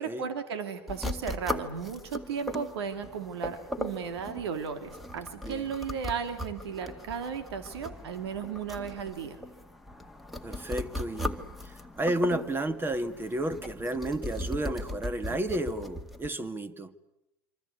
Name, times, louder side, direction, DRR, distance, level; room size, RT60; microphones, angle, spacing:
voice 1, 0.0-9.4 15.3-15.4, right 6 dB, 75° right, 2.6 m, -35 dB
sound 1, 0.9-16.3, left 1 dB, ahead, 2.0 m, -38 dB
voice 2, 10.4-16.9, right 1 dB, 15° right, 1.9 m, -32 dB
26.5 x 25.5 x 8.5 m
hypercardioid pair, 95°, 13 cm